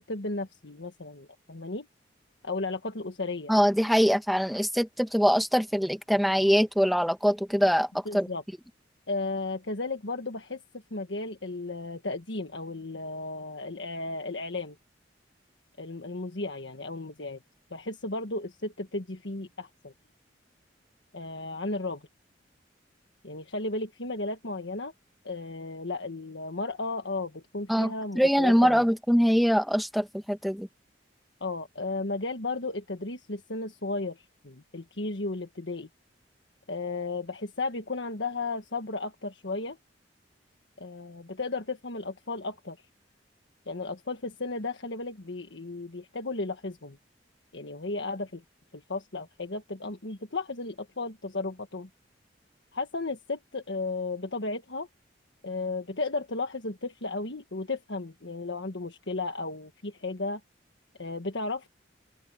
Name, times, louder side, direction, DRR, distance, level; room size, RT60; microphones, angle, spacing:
voice 1, 0.0-1.9 2.4-3.5 8.0-8.4 9.1-10.6 10.9-14.8 15.8-17.4 17.7-19.9 21.1-22.1 23.2-24.9 25.2-28.8 31.4-35.9 36.7-39.8 40.8-42.8 43.7-47.0 47.5-48.4 48.7-51.9 52.7-54.9 55.4-60.4 61.0-61.7, left 3 dB, 70° left, 1.5 m, -34 dB
voice 2, 3.5-7.9 8.1-8.3 27.7-30.7, equal, ahead, 1.7 m, -23 dB
open air
head